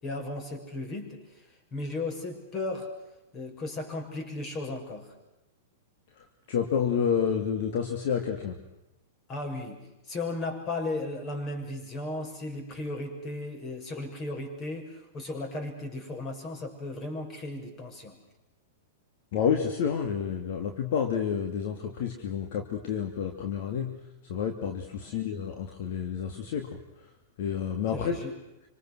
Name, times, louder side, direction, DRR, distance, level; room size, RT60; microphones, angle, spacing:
voice 1, 0.0-2.9 3.3-5.1 9.3-18.2 25.0-25.3 27.9-28.3, left 2 dB, 30° left, 5 dB, 6.8 m, -36 dB
voice 2, 6.5-8.6 19.3-24.0 24.3-26.8 27.4-28.2, left 7 dB, 55° left, 4 dB, 2.8 m, -29 dB
27.0 x 26.0 x 6.4 m, 0.93 s
hypercardioid pair, 105°, 0 cm